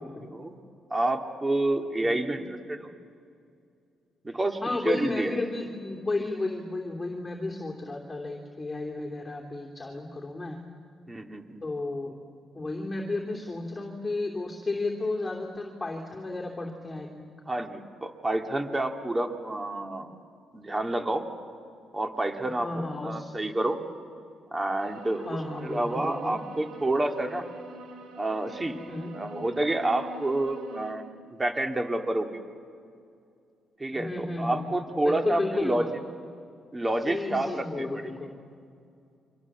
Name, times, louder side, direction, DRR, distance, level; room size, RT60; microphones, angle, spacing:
voice 1, 0.2-0.6 0.9-2.9 4.2-4.6 4.8-5.4 11.1-11.6 17.5-20.1 20.5-21.2 21.9-23.8 24.5-27.5 28.2-28.8 29.1-31.0 31.3-32.4 33.8-35.9 36.7-38.0, right 1 dB, 20° right, 5 dB, 2.4 m, -29 dB
voice 2, 2.0-2.4 4.3-10.6 11.6-12.2 12.5-17.3 22.4-23.3 25.2-26.4 28.9-29.1 33.9-34.6 35.0-35.9 37.1-38.3, left 2 dB, 15° left, -1 dB, 2.9 m, -33 dB
sound 1, 24.8-30.9, right 3 dB, 80° right, 3.2 m, -45 dB
29.0 x 24.5 x 7.4 m, 2.4 s
cardioid pair, 90°, 0 cm